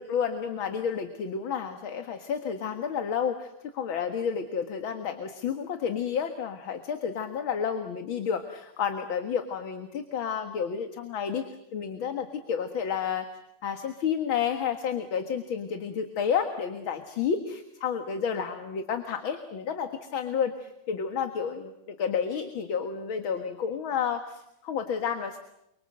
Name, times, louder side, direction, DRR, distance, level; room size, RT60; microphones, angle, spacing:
voice 1, 0.0-11.4 11.7-13.3 13.6-25.4, left 7 dB, 65° left, 7 dB, 2.4 m, -30 dB
29.0 x 24.5 x 7.8 m, 0.80 s
omnidirectional pair, 2.4 m